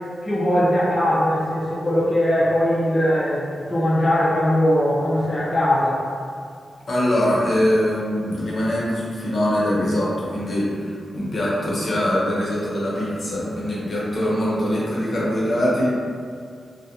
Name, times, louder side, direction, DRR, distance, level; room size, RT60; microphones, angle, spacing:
voice 1, 0.2-6.0, equal, 20° left, -9 dB, 0.4 m, -20 dB
voice 2, 6.9-15.9, equal, 50° left, -7 dB, 0.8 m, -22 dB
2.3 x 2.1 x 2.8 m, 2.2 s
wide cardioid pair, 90°, 0 cm